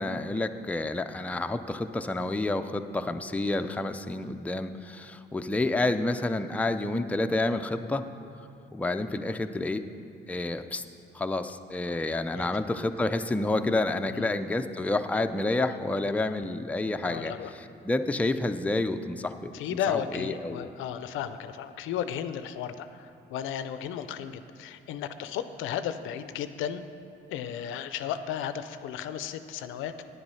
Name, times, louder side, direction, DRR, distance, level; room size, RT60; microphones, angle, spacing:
voice 1, 0.0-8.0 8.7-9.8 10.3-10.8 11.1-20.6, left 2 dB, 5° left, 7 dB, 0.4 m, -29 dB
voice 2, 17.0-17.5 19.5-26.9 27.3-30.0, left 9 dB, 90° left, 11 dB, 0.5 m, -34 dB
9.5 x 7.8 x 5.5 m, 2.5 s
cardioid pair, 90°, 20 cm